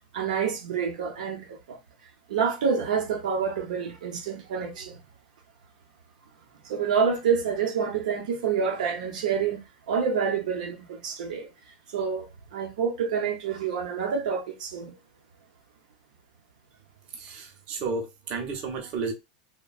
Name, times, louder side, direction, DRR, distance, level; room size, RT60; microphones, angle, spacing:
voice 1, 0.1-1.8 2.3-5.0 6.6-15.0, right 6 dB, 90° right, 0.8 m, -28 dB
voice 2, 17.2-19.1, right 4 dB, 35° right, 0.6 m, -32 dB
3.0 x 2.2 x 2.4 m
supercardioid pair, 170°, 4 cm